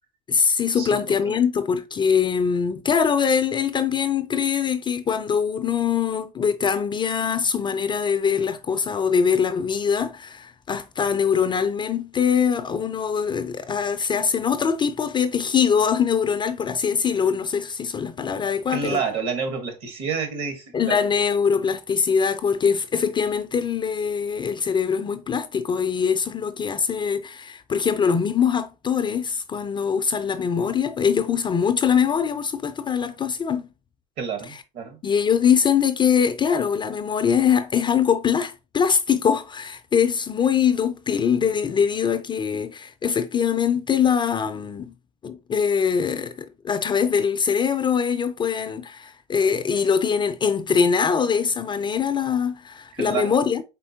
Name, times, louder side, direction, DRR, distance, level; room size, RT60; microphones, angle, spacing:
voice 1, 0.3-19.0 20.7-33.7 34.5-34.6 35.0-44.9 45.2-53.6, left 7 dB, 25° left, 0.4 m, -23 dB
voice 2, 18.7-21.0 34.2-35.0 52.9-53.4, right 5 dB, 60° right, 1.4 m, -29 dB
4.4 x 4.0 x 2.8 m
supercardioid pair, 100°, 21 cm